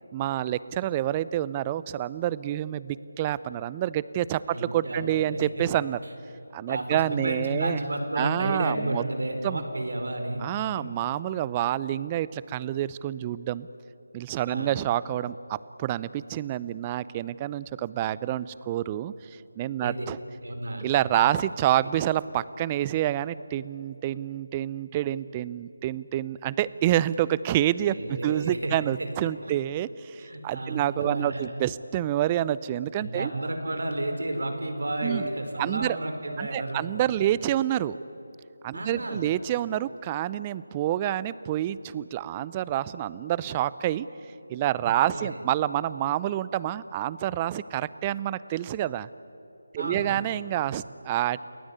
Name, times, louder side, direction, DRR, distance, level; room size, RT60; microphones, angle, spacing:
voice 1, 0.1-6.0 6.5-7.8 8.2-9.0 9.4-9.6 10.4-13.7 14.1-19.1 19.6-20.2 20.8-33.3 35.0-35.3 35.6-36.0 36.4-38.0 38.6-44.1 44.5-49.1 49.7-51.4, right 12 dB, 20° right, 18 dB, 0.6 m, -28 dB
voice 2, 4.5-5.6 6.7-10.4 10.7-10.8 14.5-14.8 19.8-20.1 20.4-20.8 27.8-29.1 29.4-29.5 30.2-31.5 33.0-36.8 38.7-39.2 44.8-45.4 49.8-50.2, right 1 dB, 65° right, 5 dB, 4.7 m, -32 dB
29.5 x 20.5 x 9.6 m, 3.0 s
figure-of-eight pair, 160°, 0 cm